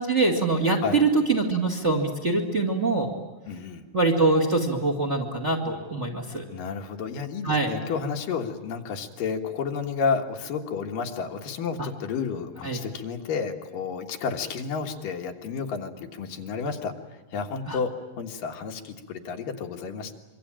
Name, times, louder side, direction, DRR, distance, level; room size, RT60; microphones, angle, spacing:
voice 1, 0.0-3.2 3.9-6.4 7.4-7.7 11.8-11.9 12.6-12.8 17.7-17.8, right 3 dB, 25° right, 3 dB, 2.0 m, -24 dB
voice 2, 3.5-3.8 6.5-17.9 18.2-20.1, left 5 dB, 70° left, 4 dB, 3.2 m, -31 dB
25.5 x 24.0 x 8.9 m, 1.2 s
omnidirectional pair, 4.1 m